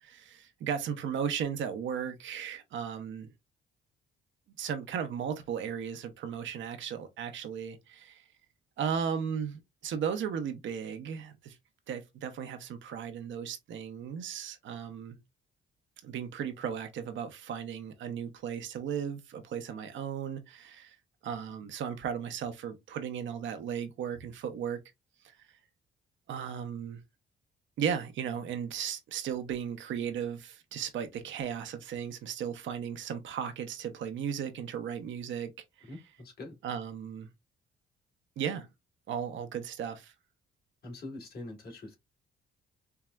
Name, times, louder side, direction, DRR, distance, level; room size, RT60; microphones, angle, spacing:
voice 1, 0.0-3.3 4.6-8.2 8.8-11.6 11.9-15.2 16.0-21.0 21.2-24.8 25.2-25.4 26.3-27.0 27.8-35.5 35.8-35.9 36.6-37.3 38.4-38.7 39.1-40.1, right 8 dB, 75° right, 0.7 m, -36 dB
voice 2, 35.9-36.6 40.8-42.0, left 2 dB, 50° left, 1.7 m, -44 dB
4.5 x 2.0 x 2.3 m
cardioid pair, 90°, 20 cm